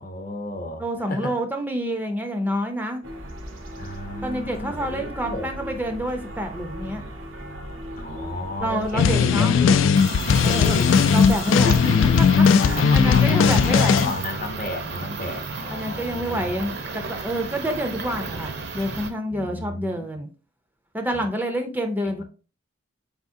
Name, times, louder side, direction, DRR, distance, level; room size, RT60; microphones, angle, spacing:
voice 1, 0.0-1.3 3.8-5.5 8.0-9.8 10.3-11.1 11.5-12.1 12.6-13.3 13.6-16.7 19.3-20.1 21.1-21.3 22.0-22.2, left 2 dB, 45° left, 0.8 m, -33 dB
voice 2, 0.8-3.0 4.2-7.0 8.6-9.6 10.4-10.8 11.1-11.8 12.2-14.1 15.7-20.3 20.9-22.2, right 1 dB, 10° right, 0.5 m, -28 dB
sound 1, 3.0-9.9, equal, 90° right, 1.0 m, -37 dB
sound 2, 9.0-14.1, left 6 dB, 80° left, 0.4 m, -18 dB
sound 3, 9.9-19.1, right 4 dB, 60° right, 0.7 m, -33 dB
4.8 x 3.6 x 2.6 m
head